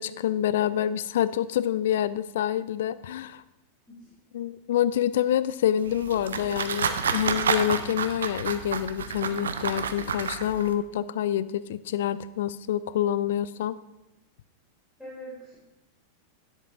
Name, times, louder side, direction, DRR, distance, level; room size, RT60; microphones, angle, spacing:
voice 1, 0.0-3.4 4.3-13.8, left 11 dB, 55° left, 15 dB, 0.3 m, -27 dB
sound 1, 5.8-10.7, right 6 dB, 65° right, 0.5 m, -30 dB
voice 2, 15.0-15.7, equal, 5° left, -8 dB, 2.2 m, -43 dB
9.9 x 7.3 x 2.6 m, 0.96 s
figure-of-eight pair, 90°, 0 cm